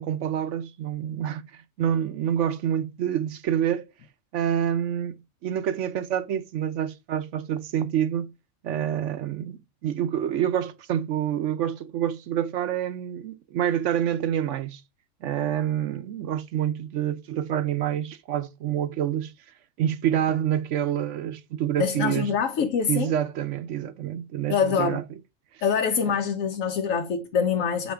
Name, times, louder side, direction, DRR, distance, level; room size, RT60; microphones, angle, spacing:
voice 1, 0.0-3.9 4.3-5.2 5.4-8.3 8.6-14.8 15.2-19.3 19.8-22.4 22.9-25.0 26.1-26.2, right 10 dB, 65° right, 0.9 m, -27 dB
voice 2, 21.8-23.1 24.5-25.0 25.6-27.9, left 6 dB, 70° left, 1.0 m, -25 dB
7.2 x 4.4 x 3.4 m
omnidirectional pair, 1.5 m